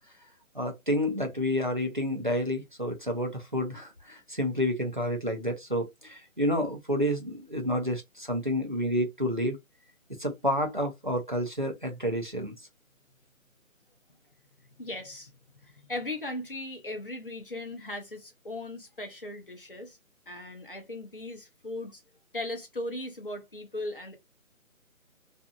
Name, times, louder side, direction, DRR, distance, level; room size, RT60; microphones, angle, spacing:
voice 1, 0.5-9.6 10.2-12.5, equal, 35° right, 0.6 m, -29 dB
voice 2, 14.8-15.3 15.6-20.0 20.3-22.0 22.3-24.2, left 1 dB, 40° left, 0.7 m, -38 dB
2.7 x 2.6 x 2.2 m
figure-of-eight pair, 180°, 42 cm